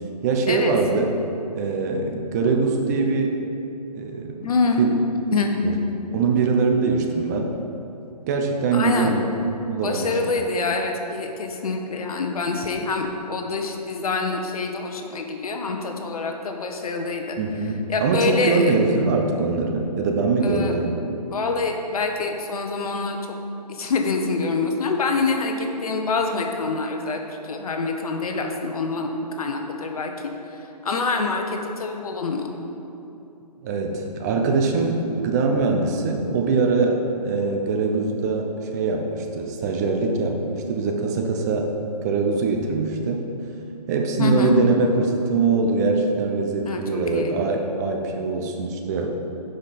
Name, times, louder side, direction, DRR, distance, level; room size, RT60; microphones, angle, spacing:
voice 1, 0.2-1.1 1.5-3.4 3.9-4.5 4.8-4.9 5.6-5.7 6.1-7.5 8.3-9.3 9.6-10.2 17.4-21.0 33.6-41.7 42.0-43.2 43.9-49.1, right 4 dB, 25° right, 2 dB, 0.6 m, -22 dB
voice 2, 4.4-4.9 5.3-5.5 8.7-9.2 9.8-17.4 17.9-18.7 20.4-20.7 21.3-23.2 23.7-30.1 30.5-32.5 44.2-44.6 46.6-47.4, left 4 dB, 60° left, 4 dB, 1.0 m, -26 dB
10.5 x 5.2 x 4.2 m, 2.9 s
hypercardioid pair, 145°, 21 cm